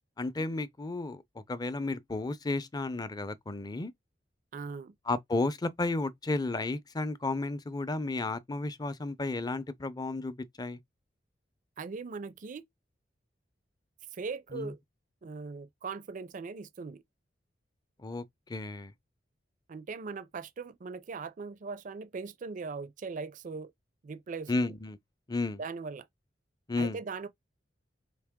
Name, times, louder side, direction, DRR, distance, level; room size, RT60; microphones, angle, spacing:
voice 1, 0.2-1.2 1.5-3.9 5.1-10.8 14.5-14.7 18.0-18.2 18.5-18.9 24.5-25.0 25.3-25.6 26.7-27.0, left 2 dB, 20° left, 0.5 m, -33 dB
voice 2, 4.5-4.9 11.8-12.6 14.1-14.8 15.2-17.0 19.7-23.7 24.0-24.7 25.6-26.1 26.8-27.3, right 4 dB, 45° right, 0.4 m, -40 dB
4.7 x 2.8 x 3.5 m
head